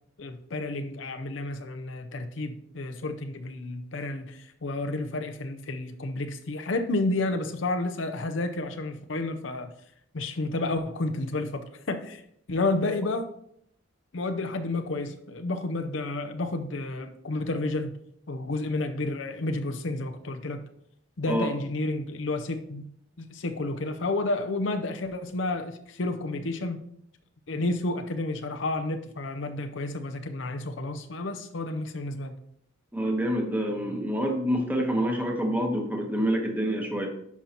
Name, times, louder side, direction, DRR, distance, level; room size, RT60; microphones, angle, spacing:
voice 1, 0.2-9.7 10.1-12.2 12.5-13.3 14.1-18.0 18.3-20.6 21.2-22.8 23.2-26.8 27.5-32.3, left 2 dB, 75° left, 0.7 m, -31 dB
voice 2, 32.9-37.1, equal, 10° right, 1.1 m, -27 dB
10.5 x 5.6 x 2.9 m
head